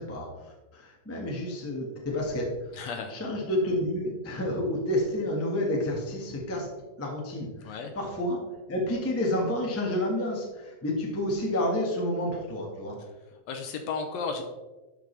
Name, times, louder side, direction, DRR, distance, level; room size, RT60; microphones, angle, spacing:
voice 1, 0.0-2.7 3.1-6.7 7.0-8.4 8.7-13.0, left 1 dB, 10° left, -1 dB, 0.7 m, -30 dB
voice 2, 2.7-3.2 7.6-7.9 13.5-14.4, left 5 dB, 75° left, 4 dB, 1.8 m, -33 dB
11.5 x 5.2 x 3.3 m, 1.1 s
omnidirectional pair, 3.4 m